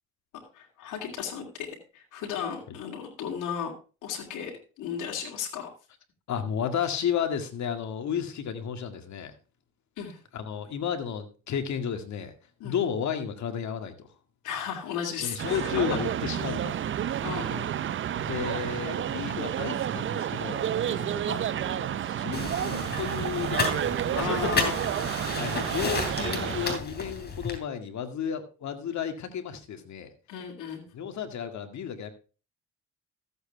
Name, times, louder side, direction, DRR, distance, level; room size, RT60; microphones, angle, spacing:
voice 1, 0.3-1.7 1.9-3.7 4.0-4.5 4.8-5.7 10.0-10.2 12.6-12.8 14.4-15.6 17.2-17.7 20.9-21.1 24.1-24.7 30.3-30.9, left 7 dB, 85° left, -1 dB, 2.7 m, -35 dB
voice 2, 6.3-9.3 10.3-12.3 12.6-14.1 15.2-16.8 18.2-20.6 21.3-24.0 24.4-24.6 25.4-30.1 30.9-32.1, left 8 dB, 65° left, 7 dB, 2.0 m, -33 dB
sound 1, 15.4-26.8, right 10 dB, 45° right, 0.5 m, -30 dB
sound 2, 22.3-27.6, left 4 dB, 35° left, 3.2 m, -32 dB
14.5 x 8.0 x 3.4 m, 0.34 s
cardioid pair, 90°, 30 cm